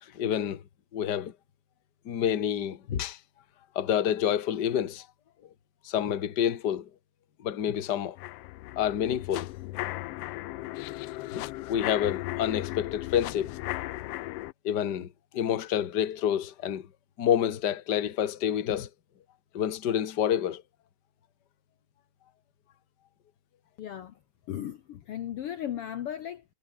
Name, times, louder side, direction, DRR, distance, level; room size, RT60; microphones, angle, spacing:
voice 1, 0.0-0.6 0.9-1.3 2.0-3.2 3.7-5.1 5.8-6.9 7.4-8.2 8.8-9.5 11.3-13.6 14.6-16.9 17.2-18.9 19.5-20.6, left 10 dB, 45° left, 1.7 m, -28 dB
sound 1, 8.2-14.5, left 18 dB, 85° left, 1.4 m, -36 dB
voice 2, 23.8-24.2 24.5-26.4, left 11 dB, 60° left, 1.8 m, -36 dB
omnidirectional pair, 3.3 m